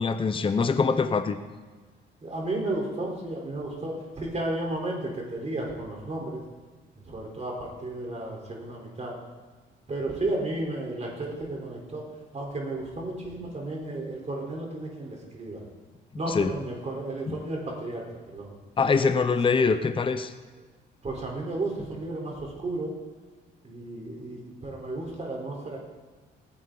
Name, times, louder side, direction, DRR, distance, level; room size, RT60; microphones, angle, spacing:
voice 1, 0.0-1.4 16.3-16.5 18.8-20.3, left 5 dB, 25° left, 10 dB, 0.7 m, -23 dB
voice 2, 2.2-6.4 7.1-9.1 9.9-12.0 12.3-15.6 16.2-18.5 19.3-19.4 21.0-22.9 23.6-25.8, right 2 dB, 35° right, -1 dB, 3.9 m, -33 dB
18.0 x 10.0 x 3.9 m, 1.4 s
cardioid pair, 90°, 20 cm